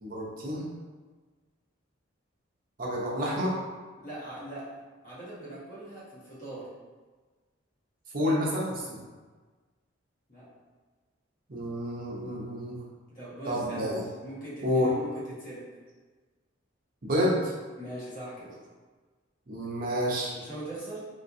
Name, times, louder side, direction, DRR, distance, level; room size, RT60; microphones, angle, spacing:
voice 1, 0.0-0.7 2.8-3.6 8.1-9.0 11.5-12.8 13.5-14.0 14.6-14.9 17.0-17.5 19.5-20.3, equal, 45° right, -4 dB, 0.6 m, -29 dB
voice 2, 4.0-4.7 5.0-6.7 10.3-10.5 13.1-15.7 17.8-18.6 20.3-21.1, right 1 dB, 45° left, -8 dB, 1.2 m, -41 dB
3.3 x 2.9 x 2.6 m, 1.4 s
head